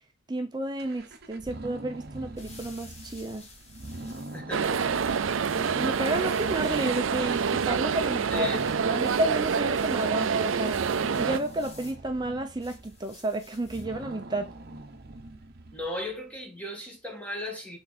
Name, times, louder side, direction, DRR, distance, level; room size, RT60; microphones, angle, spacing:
voice 1, 0.3-3.4 5.7-8.5 8.8-10.8 11.2-14.5, right 1 dB, 20° right, 0.7 m, -31 dB
sound 1, 0.8-16.2, right 1 dB, 50° right, 0.9 m, -43 dB
sound 2, 2.0-14.0, left 3 dB, 35° left, 1.6 m, -53 dB
voice 2, 4.3-5.3 8.1-8.7 15.7-17.8, left 1 dB, 5° left, 1.9 m, -37 dB
sound 3, 4.5-11.4, right 6 dB, 75° right, 0.5 m, -27 dB
7.7 x 3.7 x 4.2 m
head